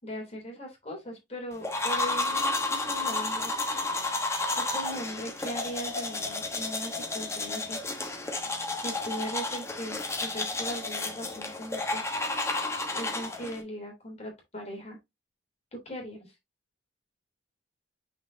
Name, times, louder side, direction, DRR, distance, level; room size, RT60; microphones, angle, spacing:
voice 1, 0.0-3.5 4.5-7.8 8.7-12.2 12.9-15.0 15.7-16.3, equal, 35° left, 3.1 m, -39 dB
sound 1, 1.6-13.6, left 2 dB, 15° left, 1.2 m, -31 dB
6.2 x 5.7 x 2.7 m
head